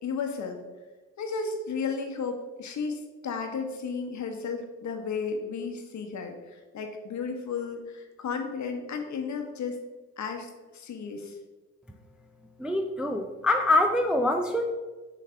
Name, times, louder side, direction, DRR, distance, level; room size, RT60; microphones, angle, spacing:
voice 1, 0.0-0.6 1.2-9.8 10.2-11.4, left 5 dB, 45° left, 4 dB, 1.1 m, -33 dB
voice 2, 12.6-14.7, left 1 dB, ahead, 3 dB, 0.4 m, -25 dB
6.6 x 3.2 x 4.4 m, 1.2 s
hypercardioid pair, 50°, 39 cm